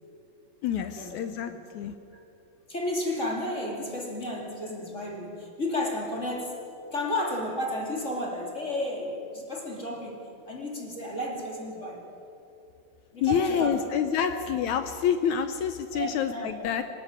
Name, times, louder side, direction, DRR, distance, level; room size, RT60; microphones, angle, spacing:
voice 1, 0.6-1.9 13.2-16.8, left 8 dB, 75° left, 9 dB, 1.9 m, -27 dB
voice 2, 2.7-6.6 6.9-12.1 13.1-13.7 14.2-14.4 15.9-16.7, left 1 dB, 25° left, 0 dB, 2.6 m, -32 dB
25.5 x 13.0 x 9.6 m, 2.7 s
omnidirectional pair, 3.9 m